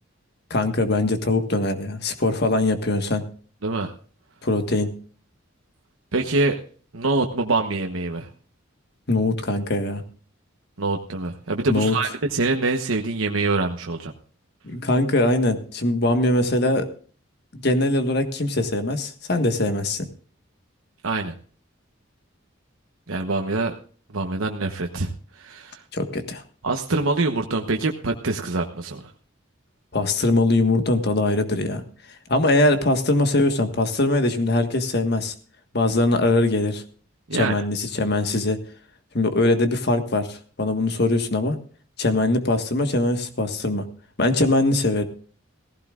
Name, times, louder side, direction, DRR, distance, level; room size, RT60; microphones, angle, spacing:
voice 1, 0.5-3.2 4.4-4.9 9.1-10.0 11.7-11.9 14.6-16.9 17.5-20.1 25.9-26.4 29.9-31.8 32.3-35.3 35.7-36.8 37.3-38.6 39.1-41.6 42.0-43.8 44.2-45.0, left 2 dB, 55° left, 7 dB, 1.6 m, -22 dB
voice 2, 3.6-3.9 6.1-6.6 6.9-8.3 10.8-14.1 21.0-21.3 23.1-23.7 24.1-25.1 25.4-25.8 26.6-29.0 37.3-37.5, right 3 dB, 90° right, 3 dB, 1.1 m, -24 dB
17.5 x 15.5 x 2.5 m, 0.41 s
head